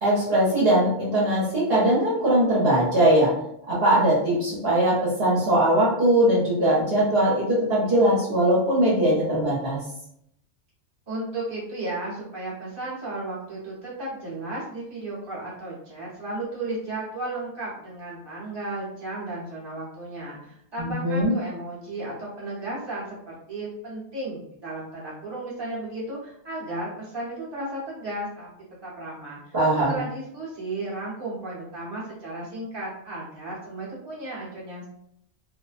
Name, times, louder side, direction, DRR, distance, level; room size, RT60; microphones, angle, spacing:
voice 1, 0.0-3.3 3.7-9.8 20.8-21.3 29.5-30.0, right 1 dB, 55° right, -7 dB, 1.0 m, -21 dB
voice 2, 11.1-28.5 28.8-29.4 29.9-34.9, right 2 dB, 25° right, -7 dB, 0.9 m, -34 dB
2.4 x 2.1 x 2.4 m, 0.73 s
omnidirectional pair, 1.3 m